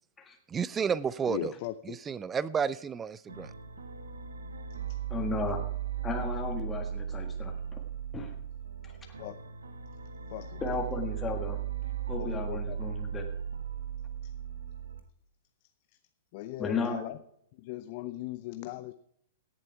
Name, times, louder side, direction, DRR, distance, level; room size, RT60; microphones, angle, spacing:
voice 1, 0.5-1.5 1.9-3.5, right 7 dB, 20° right, 20 dB, 0.4 m, -31 dB
voice 2, 1.3-2.0 9.2-9.4 10.3-10.6 12.2-12.8 16.3-17.2 17.6-18.9, left 15 dB, 45° left, 12 dB, 0.6 m, -38 dB
sound 1, 3.3-15.0, right 9 dB, 80° right, 1.3 m, -37 dB
voice 3, 5.1-5.6 6.0-7.8 8.1-8.3 8.8-9.0 10.6-11.6 12.1-13.3 16.6-17.1, left 4 dB, 15° left, 3 dB, 1.7 m, -34 dB
16.5 x 7.7 x 4.6 m, 0.69 s
figure-of-eight pair, 110°, 0 cm